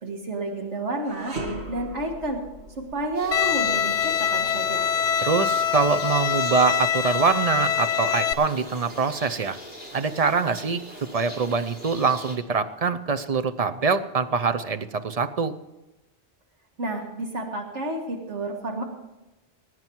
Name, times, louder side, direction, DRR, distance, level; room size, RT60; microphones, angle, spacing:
voice 1, 0.0-1.4 1.7-2.4 2.8-4.9 16.8-18.8, right 2 dB, 85° right, 2 dB, 2.0 m, -30 dB
sound 1, 1.0-10.3 10.7-10.9 11.7-12.6, right 1 dB, 70° right, 2.1 m, -42 dB
sound 2, 3.1-12.4, equal, 10° right, 3.5 m, -41 dB
Bowed string instrument, 3.3-8.3, left 8 dB, 75° left, 0.9 m, -24 dB
voice 2, 5.2-9.6 9.9-15.5, right 5 dB, 40° right, 9 dB, 0.7 m, -24 dB
20.0 x 9.3 x 4.6 m, 1.0 s
omnidirectional pair, 1.1 m